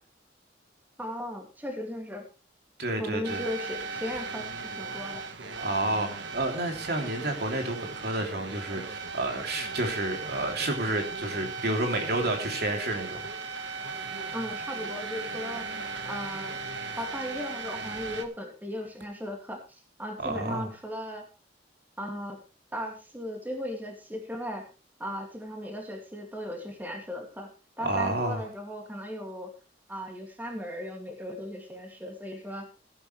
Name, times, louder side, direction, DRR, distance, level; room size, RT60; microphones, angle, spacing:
voice 1, 1.0-2.2 3.0-4.5 4.8-5.2 14.3-15.7 16.0-16.6 17.0-21.3 22.0-22.4 22.7-24.7 25.0-27.5 27.8-29.5 29.9-32.7, equal, 10° right, 2 dB, 2.6 m, -37 dB
voice 2, 2.8-3.4 5.6-13.2 20.2-20.6 27.8-28.4, right 1 dB, 60° right, 3 dB, 3.1 m, -30 dB
sound 1, 3.2-18.2, right 4 dB, 80° right, 1.5 m, -37 dB
16.0 x 11.0 x 3.3 m, 0.32 s
head